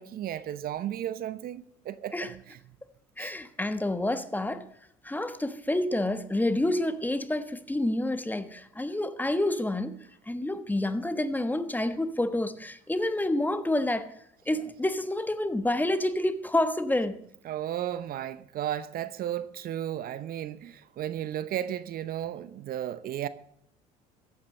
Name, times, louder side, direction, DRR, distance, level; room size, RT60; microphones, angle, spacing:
voice 1, 0.0-2.6 3.2-3.3 17.4-23.3, right 11 dB, 55° right, 0.8 m, -34 dB
voice 2, 3.2-4.7 5.0-10.0 10.3-14.1 14.5-17.2, left 1 dB, 10° left, 1.3 m, -28 dB
15.0 x 8.8 x 6.6 m
hypercardioid pair, 70°, 18 cm